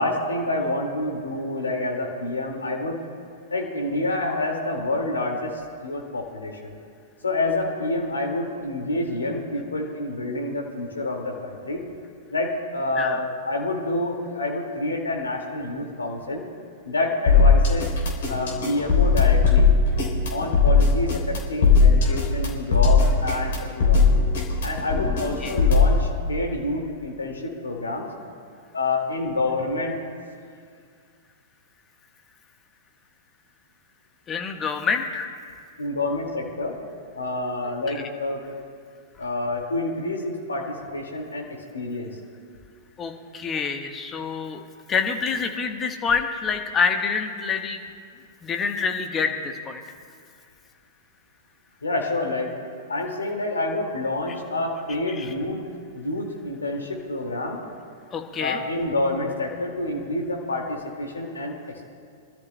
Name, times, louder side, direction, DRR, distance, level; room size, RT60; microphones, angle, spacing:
voice 1, 0.0-3.0 3.5-6.8 7.2-11.8 12.3-16.4 16.8-17.9 18.3-19.7 20.3-24.2 24.6-28.1 28.7-29.9 35.8-36.8 37.1-38.4 39.2-42.1 51.8-52.5 52.9-55.6 55.9-57.6 58.4-61.6, left 2 dB, 85° left, 1 dB, 2.1 m, -28 dB
sound 1, 17.3-26.0, left 4 dB, 65° left, 3.6 m, -18 dB
voice 2, 34.3-35.3 37.9-38.1 43.0-44.6 44.9-47.8 48.4-49.8 55.2-55.3 58.1-58.6, left 5 dB, 25° left, 4 dB, 1.3 m, -26 dB
25.5 x 13.5 x 2.2 m, 2.2 s
figure-of-eight pair, 105°, 0 cm